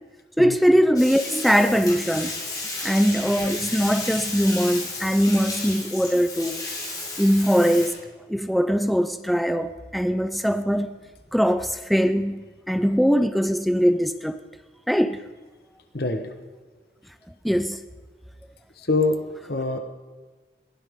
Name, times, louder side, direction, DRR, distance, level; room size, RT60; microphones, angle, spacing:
voice 1, 0.4-2.3 2.8-6.6 7.2-8.0 8.3-11.0 11.3-14.4 14.9-15.2 17.4-17.8, equal, ahead, 0.5 m, -21 dB
Bathtub (filling or washing), 0.9-7.9, left 3 dB, 20° left, 4.9 m, -33 dB
voice 2, 15.9-16.3 18.9-19.8, left 3 dB, 60° left, 1.2 m, -24 dB
21.5 x 16.0 x 3.7 m
head